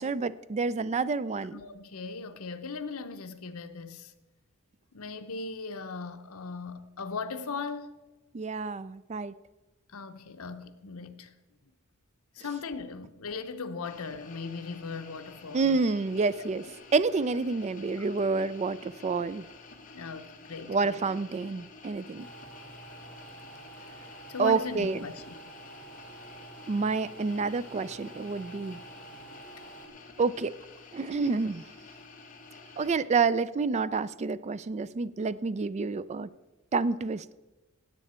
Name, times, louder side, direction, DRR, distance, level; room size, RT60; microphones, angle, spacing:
voice 1, 0.0-1.6 8.3-9.3 15.5-16.6 16.9-19.5 20.7-22.3 24.4-25.0 26.7-28.8 30.2-30.5 30.9-31.6 32.8-36.3 36.7-37.3, right 4 dB, 30° right, 0.4 m, -28 dB
voice 2, 1.5-4.1 4.9-7.9 9.9-11.3 12.3-15.8 18.0-18.1 19.9-21.0 24.3-25.3, left 4 dB, 80° left, 0.8 m, -38 dB
sound 1, 13.8-33.0, left 3 dB, 40° left, 1.5 m, -50 dB
sound 2, 22.2-29.9, right 2 dB, 5° left, 1.8 m, -49 dB
16.5 x 8.4 x 4.3 m
head